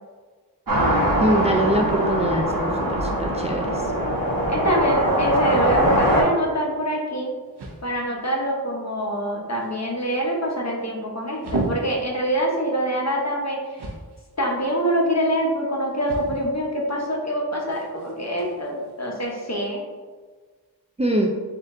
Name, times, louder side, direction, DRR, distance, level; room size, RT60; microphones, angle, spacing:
sound 1, 0.7-6.2, equal, 60° right, 1.1 m, -22 dB
voice 1, 1.2-3.8 21.0-21.4, right 1 dB, 20° right, 0 dB, 0.3 m, -23 dB
voice 2, 4.5-7.3 7.8-13.8 14.4-19.8, equal, 40° left, -2 dB, 1.0 m, -25 dB
sound 2, 6.3-19.7, right 2 dB, 80° right, 0.7 m, -38 dB
4.2 x 2.5 x 3.7 m, 1.4 s
wide cardioid pair, 45°, 39 cm